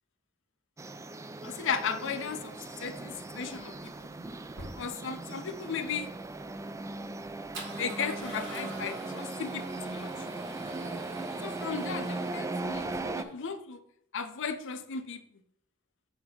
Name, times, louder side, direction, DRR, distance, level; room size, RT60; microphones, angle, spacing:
sound 1, 0.8-13.2, right 2 dB, 15° right, 0.3 m, -38 dB
voice 1, 1.4-3.9 4.8-6.1 7.8-10.1 11.4-13.8 14.1-15.2, left 6 dB, 65° left, 9 dB, 0.7 m, -36 dB
Male speech man speaking / Car / Engine starting, 2.4-13.3, right 2 dB, 60° right, 1.9 m, -48 dB
8.0 x 2.9 x 5.6 m, 0.70 s
head